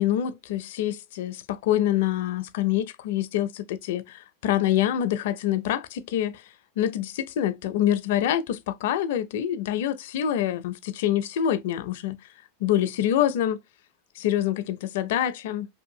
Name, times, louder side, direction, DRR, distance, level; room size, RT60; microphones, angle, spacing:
voice 1, 0.0-6.4 6.8-12.2 12.6-13.6 14.2-15.7, left 11 dB, 70° left, 0.4 m, -26 dB
2.7 x 2.4 x 2.7 m
hypercardioid pair, 110°, 0 cm